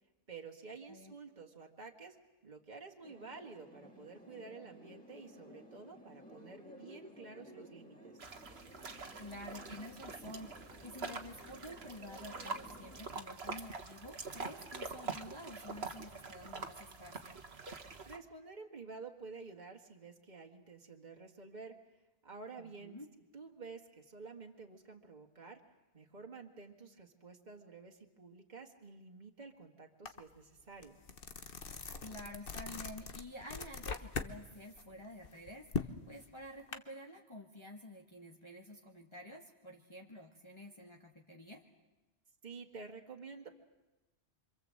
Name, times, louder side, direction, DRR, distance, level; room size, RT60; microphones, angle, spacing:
voice 1, 0.3-2.2 2.4-8.2 18.1-21.8 22.2-23.0 23.3-25.6 25.9-31.0 42.4-43.5, right 4 dB, 40° right, 2 dB, 2.0 m, -51 dB
sound 1, 3.0-13.0, equal, 5° left, 3.1 m, -56 dB
sound 2, 8.2-18.2, right 4 dB, 65° right, 1.7 m, -45 dB
voice 2, 9.2-17.3 22.6-23.1 32.0-41.6, left 1 dB, 25° left, -1 dB, 1.7 m, -50 dB
sound 3, 30.1-30.2 30.6-34.3 34.7-36.8, left 5 dB, 55° left, 1.3 m, -41 dB
26.5 x 25.5 x 7.8 m, 1.1 s
omnidirectional pair, 1.1 m